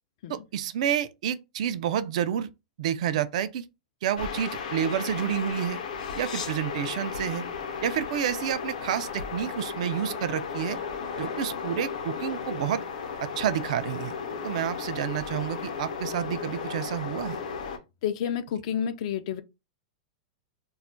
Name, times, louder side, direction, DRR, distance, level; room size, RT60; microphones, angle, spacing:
voice 1, 0.3-2.5 2.8-3.7 4.0-5.8 6.1-7.4 7.8-10.8 11.2-12.8 13.2-14.2 14.4-17.4, right 9 dB, 65° right, 0.3 m, -29 dB
Calentador de agua, 4.2-17.8, left 6 dB, 75° left, 0.8 m, -35 dB
voice 2, 18.0-19.4, left 8 dB, 55° left, 0.4 m, -30 dB
2.3 x 2.1 x 3.7 m
supercardioid pair, 150°, 4 cm